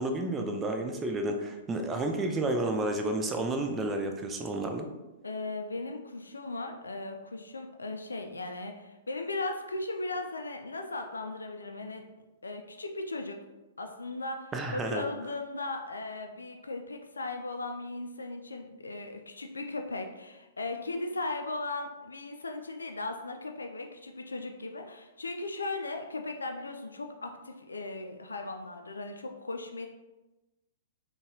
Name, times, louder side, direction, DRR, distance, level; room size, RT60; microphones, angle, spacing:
voice 1, 0.0-4.9 14.5-15.0, right 2 dB, 15° right, 4 dB, 0.4 m, -31 dB
voice 2, 5.2-12.0 12.4-13.4 13.8-29.9, left 2 dB, 80° left, 5 dB, 0.4 m, -37 dB
3.8 x 2.3 x 2.8 m, 1.1 s
figure-of-eight pair, 110°, 0 cm